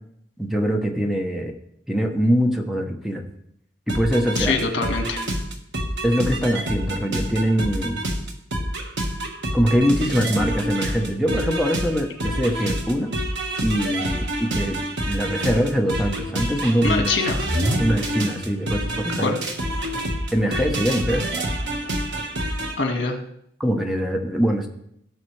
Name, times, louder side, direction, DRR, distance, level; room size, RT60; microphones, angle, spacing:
voice 1, 0.4-1.5 1.9-3.3 3.9-4.6 6.0-8.0 9.5-13.1 13.6-17.2 17.8-19.3 20.3-21.2 23.6-24.7, equal, ahead, 2 dB, 0.9 m, -23 dB
sound 1, 3.9-22.7, right 1 dB, 65° right, 1.6 m, -27 dB
voice 2, 4.4-5.2 16.8-17.4 19.2-19.4 22.8-23.2, left 3 dB, 70° left, 3 dB, 1.8 m, -23 dB
17.0 x 6.5 x 3.3 m, 0.73 s
head